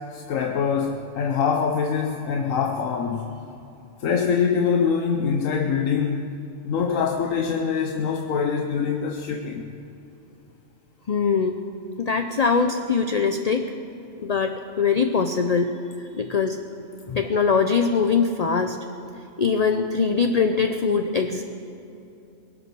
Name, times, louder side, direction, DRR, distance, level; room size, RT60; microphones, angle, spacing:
voice 1, 0.1-3.4 4.0-6.3 6.6-9.7, left 6 dB, 80° left, 3 dB, 1.2 m, -24 dB
voice 2, 11.1-11.6 12.0-13.7 14.2-15.7 16.2-16.6 17.1-18.8 19.4-21.4, left 5 dB, 45° left, 6 dB, 0.5 m, -22 dB
22.0 x 8.3 x 6.1 m, 2.8 s
omnidirectional pair, 1.4 m